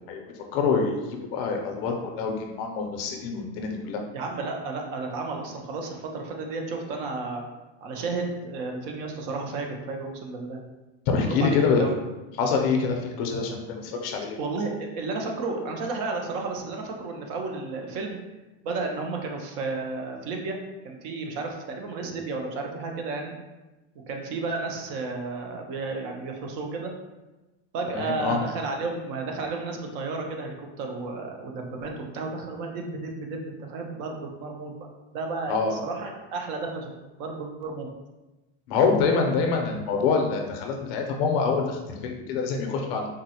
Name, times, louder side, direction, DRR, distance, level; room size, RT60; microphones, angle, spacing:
voice 1, 0.5-4.0 11.1-12.0 12.4-14.4 27.9-28.4 35.5-35.8 38.7-43.1, left 5 dB, 55° left, 2 dB, 0.5 m, -25 dB
voice 2, 4.1-7.4 7.8-10.6 11.3-11.9 14.4-18.2 18.6-20.6 20.8-23.3 24.1-26.9 27.7-34.7 35.1-36.9 37.2-37.9, right 3 dB, 50° right, 2 dB, 0.5 m, -32 dB
3.6 x 2.0 x 2.7 m, 1.1 s
supercardioid pair, 160°, 35 cm